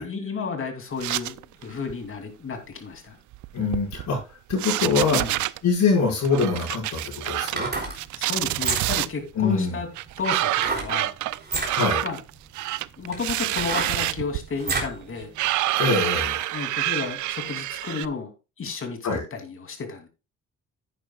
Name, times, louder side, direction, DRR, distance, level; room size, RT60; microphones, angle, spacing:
voice 1, 0.0-3.2 5.1-5.4 8.2-9.9 10.2-11.1 12.0-12.2 13.0-15.3 16.5-18.3 18.6-20.1, left 5 dB, 45° left, 4 dB, 2.8 m, -32 dB
sound 1, 1.0-1.6 1.9-2.1 3.3-4.2 4.5-5.6 6.2-7.6 7.9-9.1 10.0-18.1, right 16 dB, 75° right, 0.5 m, -27 dB
voice 2, 3.5-4.2 4.5-5.2 5.6-7.7 9.4-9.8 11.6-12.1 15.7-16.5 19.0-19.2, left 4 dB, 65° left, -5 dB, 5.3 m, -24 dB
sound 2, 7.4-8.0 8.5-9.1 10.6-10.9 11.4-11.7 12.5-12.6 13.1-15.0 15.4-15.5, right 4 dB, 35° right, 3.5 m, -29 dB
10.5 x 9.6 x 2.3 m, 0.29 s
cardioid pair, 90°, 30 cm